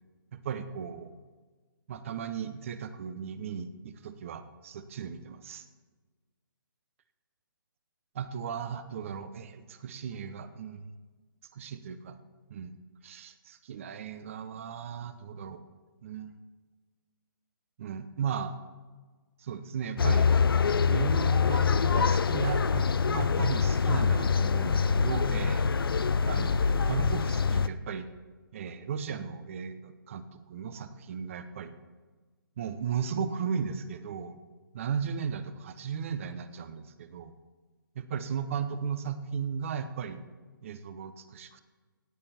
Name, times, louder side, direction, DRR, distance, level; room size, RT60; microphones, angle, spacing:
voice 1, 0.3-1.1 1.9-5.6 8.1-10.9 11.5-12.2 12.5-12.8 13.0-15.6 16.0-16.4 17.8-18.5 19.4-20.3 20.9-25.7 26.2-28.1 28.5-31.7 32.6-34.4 34.7-37.3 37.9-40.2 40.6-41.6, right 7 dB, 35° right, 12 dB, 0.9 m, -36 dB
sound 1, 20.0-27.7, left 5 dB, 85° left, 0.6 m, -25 dB
16.5 x 8.8 x 4.3 m, 1.4 s
hypercardioid pair, 160°, 12 cm